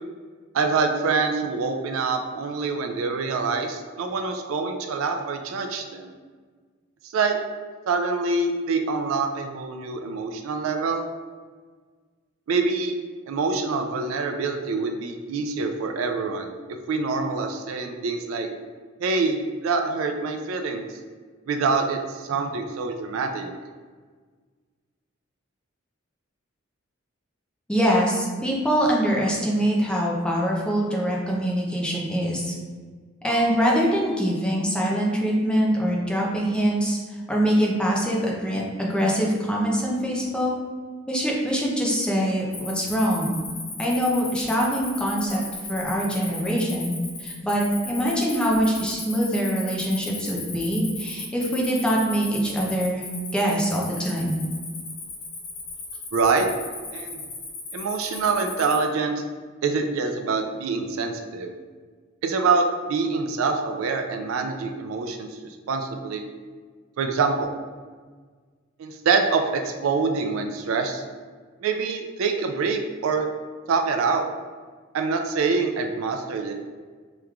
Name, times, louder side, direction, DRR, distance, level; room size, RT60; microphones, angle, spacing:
voice 1, 0.5-6.1 7.1-7.4 7.9-11.0 12.5-12.9 13.3-16.6 16.9-18.5 19.0-20.9 21.5-23.5 56.1-56.5 56.9-57.2 57.7-59.2 59.6-61.5 62.2-66.2 67.0-67.5 68.8-71.0 71.6-73.3 73.7-74.2 74.9-76.5, right 4 dB, 90° right, 5 dB, 0.4 m, -25 dB
voice 2, 27.7-32.5 33.2-40.5 41.1-43.4 43.8-45.4 45.7-53.1 53.3-54.4, equal, 5° left, -3 dB, 0.5 m, -24 dB
Cricket, 42.5-58.8, left 3 dB, 90° left, 0.8 m, -36 dB
3.5 x 3.0 x 2.3 m, 1.5 s
head